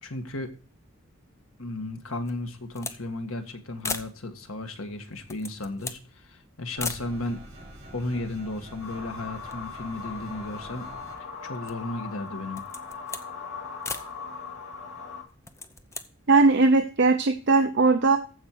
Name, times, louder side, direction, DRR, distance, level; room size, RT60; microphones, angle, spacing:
voice 1, 0.0-0.5 1.6-7.4 7.9-10.8 11.4-12.6, left 2 dB, 90° left, 6 dB, 1.7 m, -34 dB
sound 1, 2.2-3.0 3.3-3.4 3.8-4.2 5.1-6.1 6.8-7.1 7.9-8.0 8.2-9.1 9.4-10.7 11.2-11.9 12.4-13.3 13.8-14.1 15.3-16.1, left 4 dB, 15° left, 0.7 m, -37 dB
sound 2, 6.8-11.2, right 1 dB, 30° right, 6.3 m, -46 dB
sound 3, 8.8-15.2, left 5 dB, 70° left, 2.3 m, -39 dB
voice 2, 16.3-18.2, right 3 dB, 55° right, 7 dB, 0.8 m, -19 dB
14.5 x 5.4 x 4.6 m, 0.36 s
head